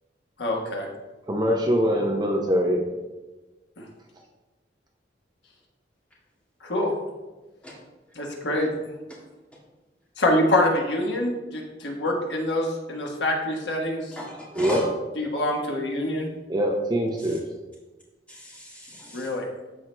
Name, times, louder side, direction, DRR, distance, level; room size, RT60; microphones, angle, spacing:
voice 1, 0.4-0.9 3.8-3.9 6.6-6.9 8.2-8.7 10.2-14.1 15.2-16.3 19.1-19.5, left 1 dB, 75° left, 0 dB, 1.3 m, -25 dB
voice 2, 1.3-2.8 14.6-14.8 16.5-17.4, equal, 25° right, 1 dB, 0.7 m, -23 dB
voice 3, 14.1-14.9 17.2-17.4 18.3-19.3, left 1 dB, 10° left, -6 dB, 1.8 m, -37 dB
13.5 x 4.6 x 2.2 m, 1.2 s
head